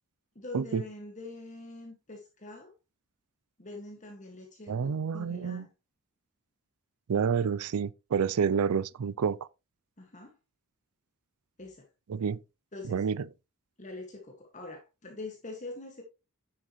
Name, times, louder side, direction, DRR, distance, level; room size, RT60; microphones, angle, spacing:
voice 1, 0.3-2.7 3.6-5.7 10.0-10.4 11.6-11.9 12.7-13.1 13.8-16.0, left 2 dB, 35° left, 1.8 m, -44 dB
voice 2, 4.7-5.6 7.1-9.4 12.1-12.4 12.9-13.2, right 6 dB, 85° right, 0.4 m, -28 dB
10.0 x 7.6 x 3.0 m
head